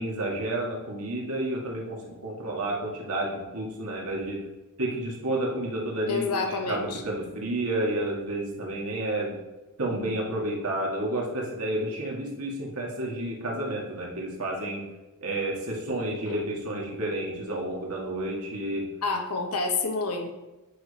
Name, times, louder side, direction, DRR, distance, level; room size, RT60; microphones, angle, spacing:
voice 1, 0.0-4.4 4.8-9.3 9.8-14.8 15.2-18.8, right 1 dB, 75° right, -2 dB, 2.0 m, -30 dB
voice 2, 6.1-7.0 19.0-20.4, left 3 dB, 85° left, 4 dB, 1.1 m, -28 dB
9.2 x 5.1 x 4.2 m, 1.1 s
head